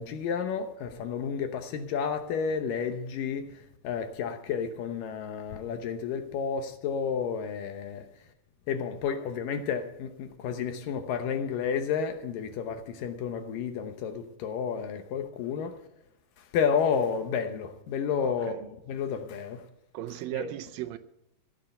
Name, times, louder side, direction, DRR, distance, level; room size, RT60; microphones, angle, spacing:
voice 1, 0.0-8.1 8.7-15.8 16.4-18.5 18.9-19.6 20.3-20.5, left 6 dB, 75° left, 2.6 m, -31 dB
voice 2, 18.2-18.7 19.9-21.0, right 14 dB, 85° right, 2.4 m, -36 dB
15.5 x 7.3 x 8.0 m
omnidirectional pair, 4.0 m